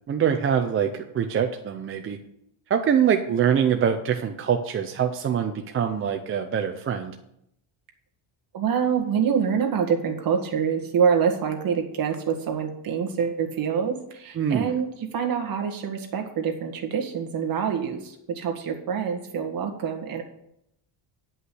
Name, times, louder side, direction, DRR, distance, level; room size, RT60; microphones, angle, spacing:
voice 1, 0.1-2.2 2.7-7.1 14.4-14.7, right 8 dB, 30° right, 5 dB, 0.5 m, -24 dB
voice 2, 8.5-20.2, right 7 dB, 45° right, 2 dB, 1.8 m, -26 dB
10.0 x 5.5 x 7.7 m, 0.77 s
cardioid pair, 170°, 48 cm